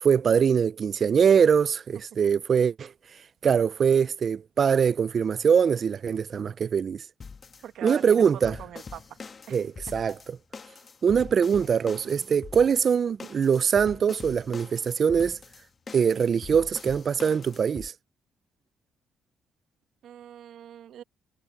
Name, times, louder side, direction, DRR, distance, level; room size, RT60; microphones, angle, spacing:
voice 1, 0.0-2.9 3.4-7.0 7.8-8.6 9.5-10.2 11.0-15.4 15.9-17.9, right 7 dB, 50° right, 0.5 m, -23 dB
sound 1, 7.2-17.9, left 5 dB, 40° left, 1.8 m, -44 dB
voice 2, 7.6-9.2 9.5-9.6 11.5-11.7 20.0-21.0, right 11 dB, 75° right, 1.7 m, -42 dB
cardioid pair, 90°, 0 cm